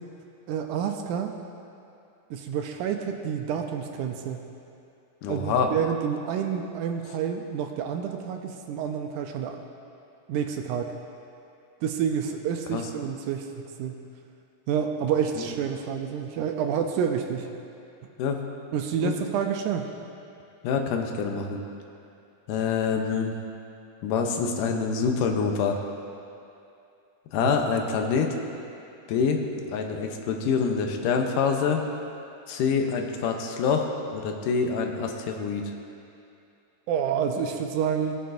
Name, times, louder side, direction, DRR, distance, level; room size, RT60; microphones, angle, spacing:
voice 1, 0.5-1.4 2.3-4.5 5.3-9.6 10.3-10.9 11.8-13.5 13.8-14.0 14.7-17.5 18.7-19.9 27.4-27.5 36.9-38.2, right 8 dB, 80° right, 4 dB, 1.9 m, -28 dB
voice 2, 5.2-5.7 12.7-12.8 15.4-15.5 18.2-18.4 19.0-19.1 20.6-21.6 22.5-23.3 24.0-25.8 27.3-28.3 29.1-29.4 29.7-31.8 32.5-35.6, left 5 dB, 80° left, 3 dB, 2.3 m, -26 dB
17.5 x 9.1 x 2.6 m, 2.6 s
omnidirectional pair, 3.7 m